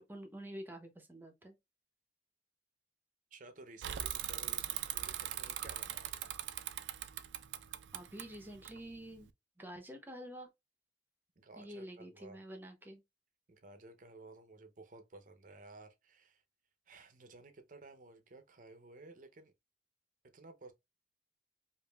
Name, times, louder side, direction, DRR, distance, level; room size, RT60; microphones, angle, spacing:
voice 1, 0.0-1.6 7.9-9.3 9.6-10.5 11.6-13.0, equal, 10° right, 0.7 m, -48 dB
voice 2, 3.3-6.4 11.4-12.4 13.5-16.4 16.9-19.5 20.3-20.7, right 2 dB, 45° right, 0.6 m, -55 dB
Bicycle / Mechanisms, 3.8-9.3, right 12 dB, 90° right, 0.4 m, -40 dB
5.0 x 2.5 x 2.3 m
head